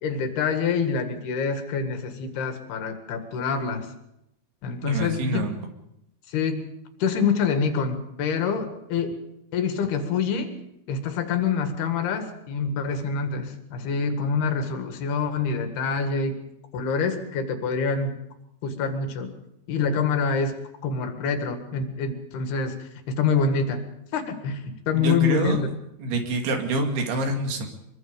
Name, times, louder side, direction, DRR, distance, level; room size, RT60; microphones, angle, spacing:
voice 1, 0.0-3.9 4.6-5.4 6.3-6.7 7.0-9.1 9.5-10.5 10.9-16.4 16.7-18.2 18.6-19.3 19.7-20.6 20.8-22.8 23.1-23.8 24.1-25.7, left 5 dB, 85° left, 7 dB, 4.0 m, -26 dB
voice 2, 4.8-5.5 24.9-25.7 26.0-27.7, right 2 dB, 85° right, 4 dB, 4.4 m, -26 dB
23.5 x 23.0 x 5.2 m, 0.82 s
omnidirectional pair, 4.4 m